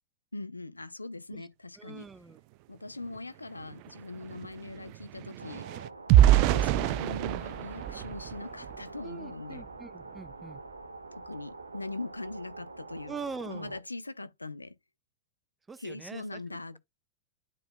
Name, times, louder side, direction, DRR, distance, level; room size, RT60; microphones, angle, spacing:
voice 1, 0.3-2.1 2.7-5.8 6.4-9.7 11.2-13.1 13.5-14.8 15.8-16.8, left 2 dB, 80° left, 0.6 m, -41 dB
voice 2, 1.8-2.4 9.0-10.6 13.1-13.7 15.7-16.4, right 5 dB, 15° right, 0.9 m, -43 dB
sound 1, 3.1-3.2 3.5-9.0 9.5-9.7 10.1-10.3, right 12 dB, 45° right, 0.4 m, -26 dB
sound 2, 5.4-13.8, right 3 dB, 80° right, 0.7 m, -46 dB
10.5 x 4.8 x 2.2 m
figure-of-eight pair, 90°, 0 cm